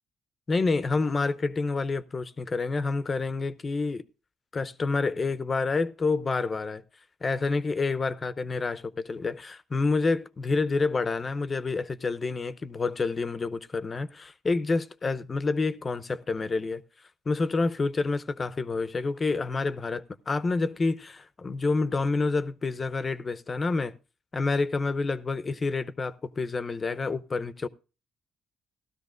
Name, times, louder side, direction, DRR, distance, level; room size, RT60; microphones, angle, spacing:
voice 1, 0.5-4.0 4.5-6.8 7.2-16.8 17.3-23.9 24.3-27.7, left 3 dB, 35° left, 0.7 m, -28 dB
16.0 x 13.0 x 2.5 m
cardioid pair, 90°, 0 cm